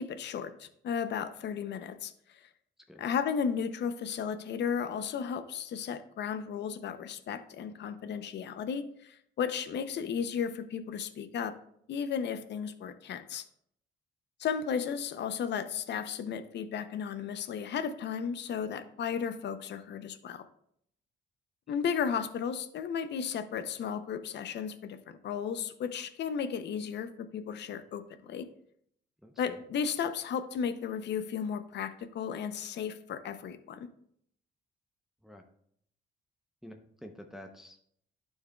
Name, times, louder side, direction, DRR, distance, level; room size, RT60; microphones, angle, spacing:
voice 1, 0.0-2.1 3.0-11.5 11.9-13.4 14.4-20.4 21.7-28.0 28.3-28.5 29.4-33.9, left 7 dB, 60° left, 10 dB, 0.6 m, -34 dB
voice 2, 29.2-29.6 35.2-35.4 36.6-38.0, equal, ahead, 3 dB, 0.7 m, -49 dB
11.5 x 4.6 x 2.3 m, 0.69 s
cardioid pair, 90°, 20 cm